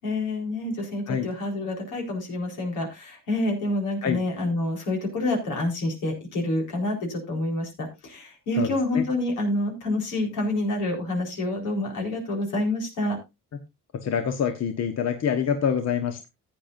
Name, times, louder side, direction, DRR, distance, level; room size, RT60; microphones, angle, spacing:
voice 1, 0.0-13.2, left 2 dB, 90° left, 1 dB, 4.4 m, -28 dB
voice 2, 14.0-16.3, left 7 dB, 60° left, 7 dB, 1.2 m, -25 dB
14.5 x 9.0 x 2.6 m, 0.23 s
cardioid pair, 90°, 30 cm